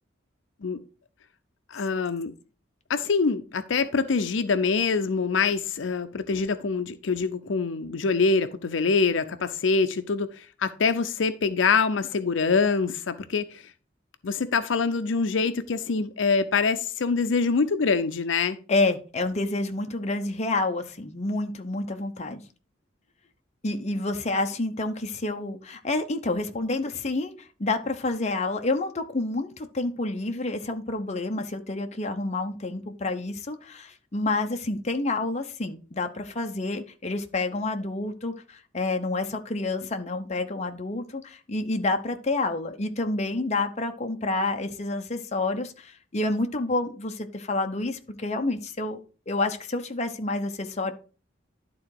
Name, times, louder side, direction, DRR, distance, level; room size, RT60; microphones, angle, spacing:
voice 1, 1.7-2.3 2.9-13.6 14.2-18.6, left 4 dB, 80° left, 0.6 m, -25 dB
voice 2, 18.7-22.4 23.6-49.0 49.3-50.9, left 2 dB, 35° left, 0.8 m, -29 dB
11.0 x 3.8 x 4.8 m
head